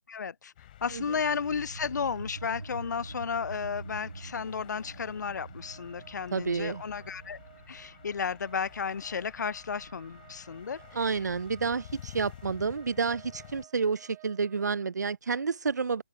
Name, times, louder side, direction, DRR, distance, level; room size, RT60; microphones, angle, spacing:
voice 1, 0.1-0.5 0.8-7.4 7.7-10.8, left 6 dB, 60° left, 0.4 m, -33 dB
sound 1, 0.6-13.7, left 12 dB, 25° left, 3.3 m, -51 dB
sound 2, 0.9-12.0, right 3 dB, 85° right, 2.0 m, -47 dB
sound 3, 5.6-14.9, right 33 dB, 15° right, 4.1 m, -57 dB
voice 2, 6.3-6.8 10.9-16.0, right 5 dB, 55° right, 0.6 m, -30 dB
open air
figure-of-eight pair, 165°, 11 cm